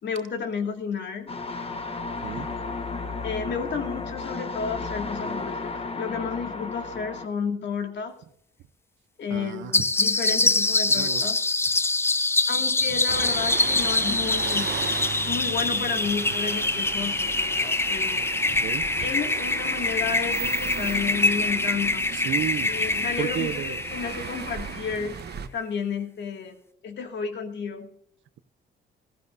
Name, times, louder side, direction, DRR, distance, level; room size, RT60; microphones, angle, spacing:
voice 1, 0.0-1.3 3.2-8.1 9.2-11.4 12.5-14.7 15.2-18.2 19.0-22.1 22.6-25.1 25.5-26.5 26.8-27.9, left 6 dB, 65° left, 2.3 m, -32 dB
sound 1, 1.3-7.3, left 3 dB, 30° left, 1.2 m, -33 dB
voice 2, 9.3-9.7 10.9-11.3 18.6-18.8 22.2-22.7 23.2-23.8, right 12 dB, 75° right, 0.7 m, -31 dB
sound 2, 9.7-24.9, left 3 dB, 10° left, 0.4 m, -25 dB
sound 3, 13.1-25.5, right 7 dB, 55° right, 1.0 m, -36 dB
14.5 x 14.5 x 2.7 m
cardioid pair, 90°, 20 cm